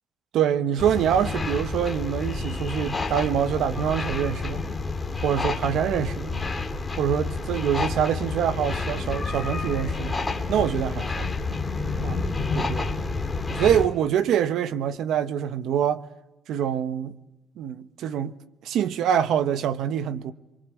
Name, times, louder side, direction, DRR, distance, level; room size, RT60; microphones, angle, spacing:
voice 1, 0.3-4.6 5.2-6.4 7.0-10.2 10.5-11.3 12.0-12.2 12.5-12.9 13.5-16.1 16.5-17.2 17.6-18.3 18.6-20.3, right 9 dB, 70° right, 1.3 m, -25 dB
sound 1, 0.8-13.9, left 3 dB, 15° left, 2.9 m, -29 dB
25.5 x 24.0 x 8.6 m
cardioid pair, 155°, 0 cm